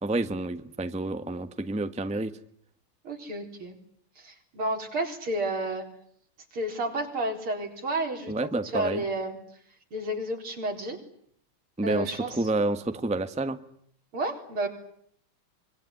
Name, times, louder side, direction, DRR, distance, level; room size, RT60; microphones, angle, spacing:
voice 1, 0.0-2.3 8.3-9.0 11.8-13.6, right 2 dB, 5° right, 10 dB, 0.9 m, -29 dB
voice 2, 3.0-3.8 4.2-5.8 6.5-9.4 9.9-11.0 11.8-12.4 14.1-14.7, right 1 dB, 85° right, 3 dB, 5.1 m, -31 dB
25.0 x 24.0 x 9.7 m, 0.66 s
omnidirectional pair, 2.3 m